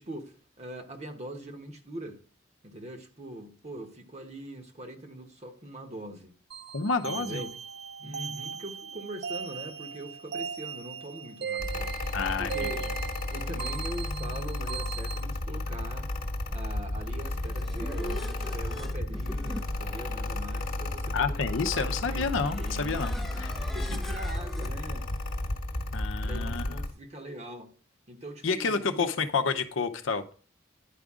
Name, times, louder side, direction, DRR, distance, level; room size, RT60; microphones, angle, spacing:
voice 1, 0.0-2.2 2.6-6.3 7.0-7.6 8.0-12.9 13.3-16.1 16.5-21.4 21.7-22.3 22.6-25.1 26.2-27.7 28.1-29.1, right 1 dB, 35° right, 1.1 m, -42 dB
sound 1, 6.5-15.2, right 7 dB, 55° right, 0.5 m, -38 dB
voice 2, 6.7-7.5 12.1-12.7 21.1-23.1 23.4-23.5 25.9-26.8 28.4-30.3, left 4 dB, 65° left, 0.7 m, -29 dB
Mechanical fan, 11.6-26.9, left 2 dB, 45° left, 1.2 m, -33 dB
sound 2, 17.2-24.7, left 1 dB, ahead, 0.5 m, -43 dB
10.0 x 5.0 x 3.6 m
head